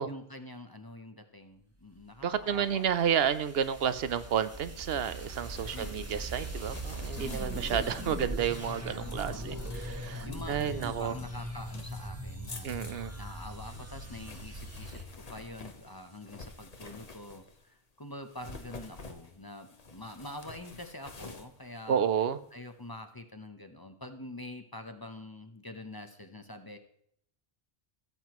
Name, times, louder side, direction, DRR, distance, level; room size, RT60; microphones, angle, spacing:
voice 1, 0.0-2.9 5.7-6.2 9.2-9.9 10.2-12.7 13.2-22.0 22.5-26.8, left 1 dB, 25° left, 7 dB, 0.8 m, -45 dB
sound 1, 2.2-15.0, right 1 dB, 15° right, 1.1 m, -40 dB
voice 2, 2.2-11.1 12.6-13.1 21.9-22.4, right 8 dB, 75° right, 13 dB, 0.9 m, -31 dB
sound 2, 5.0-17.7 18.2-22.5, left 3 dB, 40° left, 1.1 m, -49 dB
16.0 x 7.7 x 3.0 m, 0.67 s
omnidirectional pair, 1.0 m